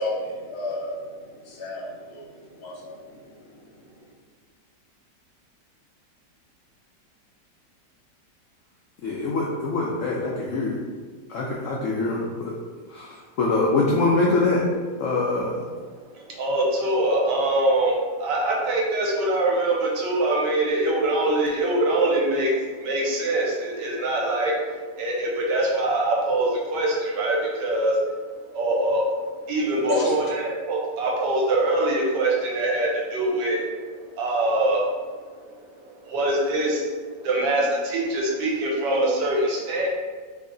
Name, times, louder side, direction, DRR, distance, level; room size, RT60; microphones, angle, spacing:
voice 1, 0.0-4.1 29.7-30.3, left 1 dB, 65° left, -3 dB, 1.3 m, -32 dB
voice 2, 9.0-10.8 11.3-12.5 12.9-14.6 15.0-15.6, left 3 dB, 85° left, -3 dB, 0.6 m, -24 dB
voice 3, 16.2-28.2 28.5-29.1 29.4-33.8 34.2-35.0 35.8-36.8 37.2-39.9, right 1 dB, 75° right, -2 dB, 1.4 m, -23 dB
3.1 x 2.8 x 3.8 m, 1.5 s
omnidirectional pair, 1.9 m